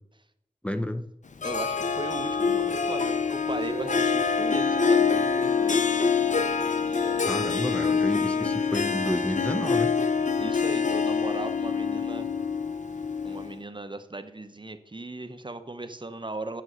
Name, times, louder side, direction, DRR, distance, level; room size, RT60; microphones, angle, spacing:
voice 1, 0.6-1.1 7.3-9.9, left 1 dB, 10° left, 9 dB, 0.6 m, -30 dB
Harp, 1.4-13.6, left 5 dB, 65° left, 0.6 m, -25 dB
voice 2, 1.4-6.1 6.9-7.4 10.4-12.3 13.2-16.6, right 2 dB, 35° right, 10 dB, 0.8 m, -38 dB
Guitar, 3.5-7.3, right 4 dB, 75° right, 0.6 m, -41 dB
9.0 x 7.5 x 6.2 m, 0.82 s
wide cardioid pair, 50°, 14 cm